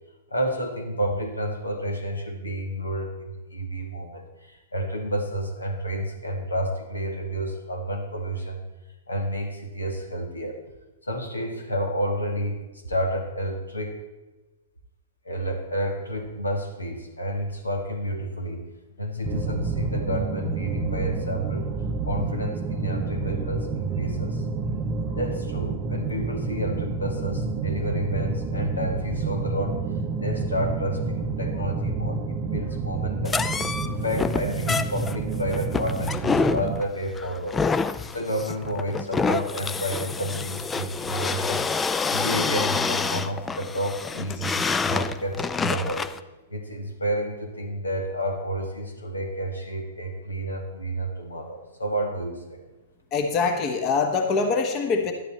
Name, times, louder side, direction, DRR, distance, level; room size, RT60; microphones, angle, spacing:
voice 1, 0.3-8.6 9.1-10.6 11.1-12.6 12.9-14.0 15.2-18.6 19.0-21.7 22.1-24.4 25.1-29.8 30.2-33.4 33.8-37.6 38.0-41.6 42.1-46.1 46.5-52.6, equal, 85° left, 3 dB, 1.9 m, -30 dB
sound 1, 19.2-36.8, right 4 dB, 25° right, 0.7 m, -29 dB
sound 2, 33.2-46.2, left 4 dB, 15° left, 0.4 m, -27 dB
voice 2, 53.1-55.1, left 4 dB, 35° left, 5 dB, 1.3 m, -24 dB
11.5 x 10.0 x 4.4 m, 1.1 s
figure-of-eight pair, 110°, 0 cm